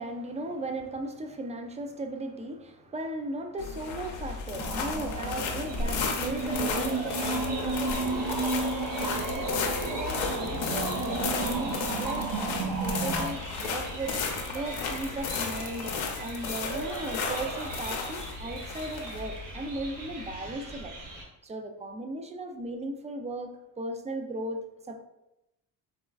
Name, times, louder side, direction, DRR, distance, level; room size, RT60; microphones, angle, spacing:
voice 1, 0.0-21.0 21.4-25.0, right 2 dB, 15° right, 5 dB, 0.3 m, -37 dB
sound 1, 3.6-20.5, left 5 dB, 70° left, 0.7 m, -34 dB
sound 2, 4.6-13.3, right 3 dB, 45° right, 0.7 m, -32 dB
sound 3, 5.6-21.2, right 2 dB, 65° right, 1.4 m, -41 dB
4.1 x 2.3 x 2.3 m, 0.89 s
supercardioid pair, 60°, 48 cm